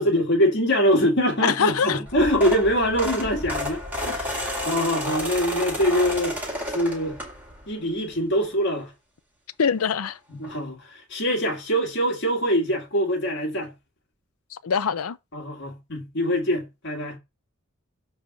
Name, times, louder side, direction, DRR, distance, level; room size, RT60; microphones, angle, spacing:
voice 1, 0.0-6.4 6.7-7.2 7.7-8.9 10.3-13.7 15.3-17.2, equal, 55° left, 1.9 m, -24 dB
voice 2, 1.6-2.0 9.6-10.2 14.6-15.2, left 6 dB, 85° left, 0.5 m, -23 dB
sound 1, 2.1-7.7 8.2-8.4 9.7-9.8 10.0-10.1 10.4-10.6, left 1 dB, 10° right, 2.1 m, -31 dB
7.3 x 3.5 x 4.7 m
head